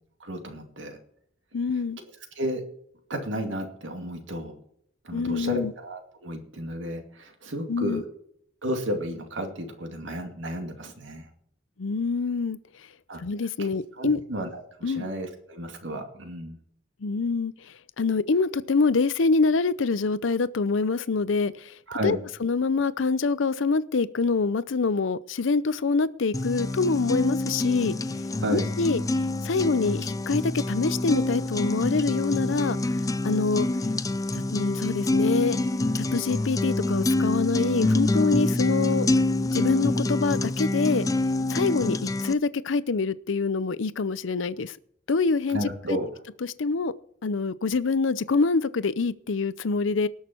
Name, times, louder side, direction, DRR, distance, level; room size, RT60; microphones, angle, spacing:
voice 1, 0.2-1.0 2.4-2.6 3.1-4.5 5.0-8.1 8.6-11.3 13.1-13.2 13.6-13.7 14.0-16.6 21.9-22.2 28.4-28.7 45.5-46.1, equal, 70° right, 2.4 m, -32 dB
voice 2, 1.5-2.0 5.1-5.7 7.7-8.0 11.8-12.6 13.2-14.2 14.8-15.1 17.0-21.8 22.0-27.9 28.5-29.0 29.4-32.8 33.2-33.7 34.3-35.6 36.0-39.1 39.5-41.1 41.5-44.8 45.1-45.6 46.4-46.9 47.2-50.1, left 4 dB, 75° left, 0.6 m, -25 dB
sound 1, 26.3-42.3, left 2 dB, 20° left, 0.4 m, -26 dB
19.0 x 6.5 x 4.5 m
head